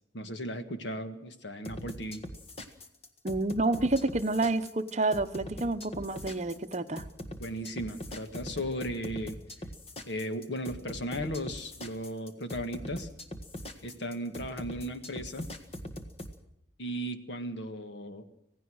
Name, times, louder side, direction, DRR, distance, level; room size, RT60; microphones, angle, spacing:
voice 1, 0.1-2.2 7.4-9.4 10.1-13.1 13.8-15.5 16.8-18.2, equal, 70° left, 8 dB, 1.7 m, -36 dB
sound 1, 1.6-16.3, left 1 dB, 30° left, 1.6 m, -42 dB
voice 2, 3.2-7.0, right 2 dB, 35° right, 10 dB, 0.9 m, -29 dB
26.5 x 16.5 x 6.3 m, 0.78 s
head